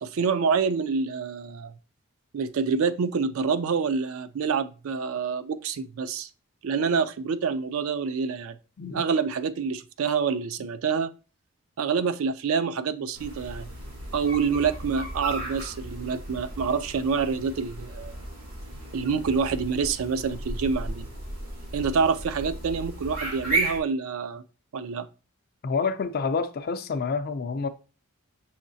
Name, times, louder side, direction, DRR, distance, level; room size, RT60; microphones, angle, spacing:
voice 1, 0.0-1.7 2.3-6.3 6.6-8.6 8.9-11.1 11.8-13.7 14.1-18.2 18.9-21.1 21.7-24.4 24.7-25.1, right 5 dB, 70° right, 0.4 m, -27 dB
sound 1, 13.1-23.8, right 2 dB, 85° right, 2.8 m, -34 dB
voice 2, 25.6-27.7, left 5 dB, 45° left, 0.4 m, -28 dB
6.4 x 3.1 x 2.6 m
head